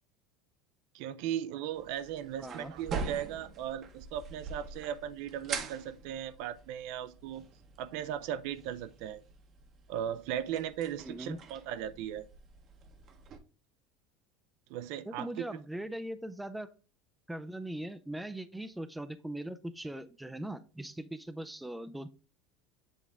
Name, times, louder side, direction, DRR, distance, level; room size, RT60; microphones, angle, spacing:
voice 1, 0.9-7.4 7.8-9.2 9.9-12.3 14.7-15.4, right 10 dB, 65° right, 0.4 m, -37 dB
sound 1, 1.7-13.4, right 5 dB, 35° right, 0.8 m, -44 dB
voice 2, 2.4-2.7 11.0-11.4 15.1-16.7 17.3-22.1, right 1 dB, 5° right, 0.4 m, -40 dB
7.6 x 3.5 x 3.5 m
supercardioid pair, 125°, 0 cm